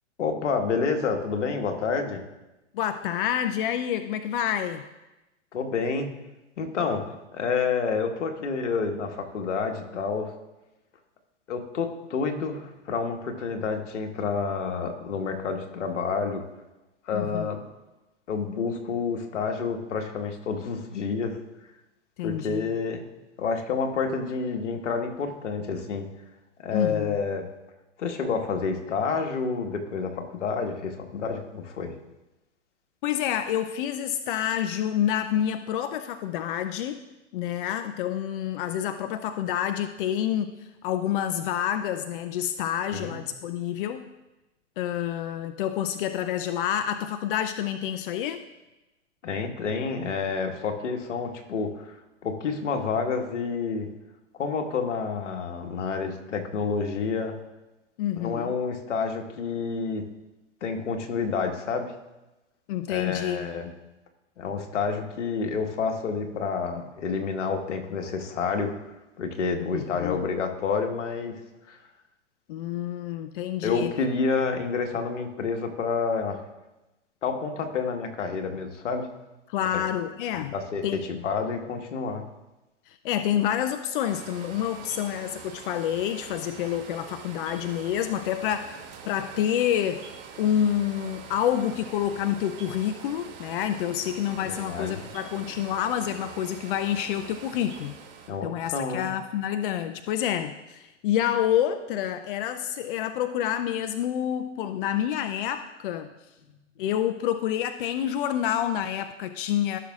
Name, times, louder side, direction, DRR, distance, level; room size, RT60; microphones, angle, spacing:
voice 1, 0.2-2.2 5.5-6.1 6.6-7.1 7.3-10.3 11.5-16.4 17.0-17.6 18.3-21.4 22.2-23.0 23.4-26.1 26.6-27.5 28.0-31.9 42.9-43.2 49.2-52.0 52.2-53.9 54.4-57.3 58.2-60.1 60.6-61.9 62.9-63.7 64.4-68.7 69.2-71.4 71.7-71.8 73.6-76.4 77.2-79.1 79.7-79.8 80.3-80.8 81.1-82.2 94.4-95.0 98.3-99.1, left 5 dB, 75° left, 4 dB, 1.5 m, -29 dB
voice 2, 2.7-4.8 17.1-17.5 22.2-22.7 26.7-27.2 33.0-37.0 37.3-44.1 44.8-48.4 58.0-58.5 62.7-63.5 69.7-70.2 72.5-73.9 79.5-80.5 80.8-81.0 82.9-88.8 89.1-90.0 90.4-97.9 98.4-106.1 106.8-109.8, left 10 dB, 45° left, 9 dB, 0.5 m, -28 dB
sound 1, 84.0-98.3, right 6 dB, 30° right, 1.3 m, -44 dB
15.5 x 6.3 x 2.4 m, 1.0 s
hypercardioid pair, 130°, 37 cm